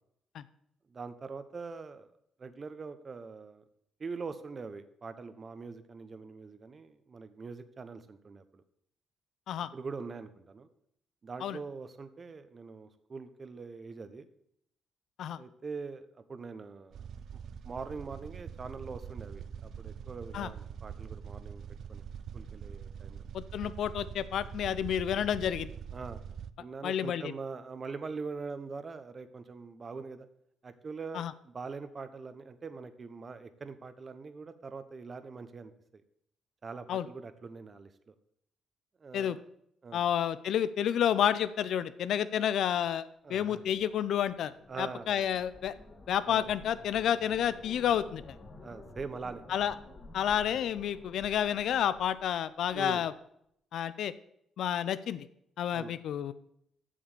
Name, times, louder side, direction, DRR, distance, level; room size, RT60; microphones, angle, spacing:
voice 1, 0.9-2.1 2.4-3.6 4.0-8.6 9.7-10.7 11.2-14.3 15.4-17.0 17.6-21.6 21.9-22.0 22.3-23.2 25.9-26.2 26.6-30.3 30.6-36.0 36.6-38.1 39.0-39.4 39.8-40.0 43.2-43.6 44.7-45.3 46.3-46.5 48.6-49.4 52.7-53.1 55.7-55.9, right 4 dB, 40° right, 11 dB, 0.9 m, -43 dB
sound 1, 16.9-26.5, right 8 dB, 70° right, 0.4 m, -44 dB
voice 2, 23.3-25.7 26.8-27.3 31.1-31.3 36.9-37.1 39.1-39.4 39.9-44.5 44.8-45.7 46.1-48.2 49.5-49.7 50.1-53.1 53.7-54.1 54.6-55.3 55.6-56.3, left 9 dB, 75° left, 15 dB, 0.5 m, -30 dB
sound 2, 43.7-52.9, left 2 dB, 35° left, 2.4 m, -52 dB
7.4 x 6.9 x 6.8 m, 0.73 s
cardioid pair, 90°, 0 cm